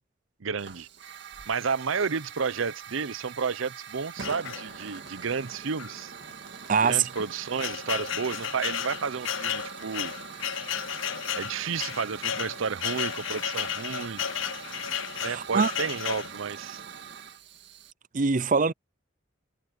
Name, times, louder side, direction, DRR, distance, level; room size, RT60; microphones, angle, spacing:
voice 1, 0.4-0.9 1.5-6.1 6.8-10.1 11.3-14.2 15.2-16.8, right 5 dB, 75° right, 0.7 m, -31 dB
Hiss / Fire, 0.6-17.9, right 6 dB, 55° right, 1.9 m, -43 dB
sound 1, 4.2-5.1 5.8-5.9 6.2-6.3 7.0-16.3, left 9 dB, 70° left, 0.8 m, -33 dB
voice 2, 6.7-7.0 15.2-15.7 18.1-18.7, right 5 dB, 40° right, 0.5 m, -23 dB
head